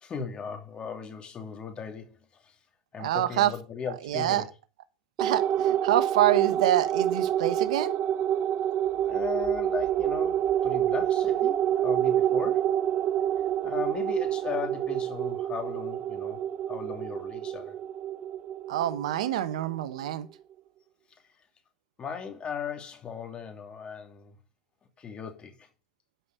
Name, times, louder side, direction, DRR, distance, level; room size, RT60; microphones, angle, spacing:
voice 1, 0.0-2.6 2.9-4.5 9.0-12.7 13.6-16.4 16.7-17.8 22.0-24.4 25.0-25.7, left 6 dB, 30° left, 2.9 m, -37 dB
voice 2, 3.0-3.5 4.1-4.4 5.2-7.9 18.7-20.3, right 13 dB, 75° right, 1.3 m, -26 dB
sound 1, 5.2-20.0, right 10 dB, 40° right, 0.9 m, -27 dB
13.0 x 5.5 x 5.3 m
hypercardioid pair, 105°, 4 cm